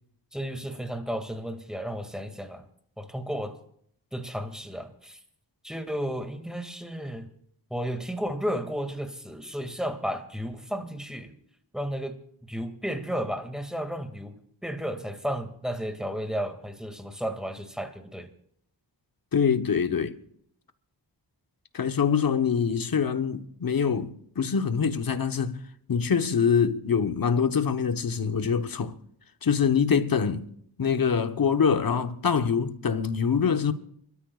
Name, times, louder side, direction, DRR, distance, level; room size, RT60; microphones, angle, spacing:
voice 1, 0.3-2.7 3.0-3.5 4.1-5.2 5.6-7.3 7.7-11.3 11.7-18.3, equal, ahead, 2.3 m, -33 dB
voice 2, 19.3-20.2 21.7-25.6 25.9-28.9 29.4-30.5 30.8-33.7, left 6 dB, 50° left, 1.1 m, -24 dB
29.0 x 13.0 x 2.4 m
cardioid pair, 45°, 44 cm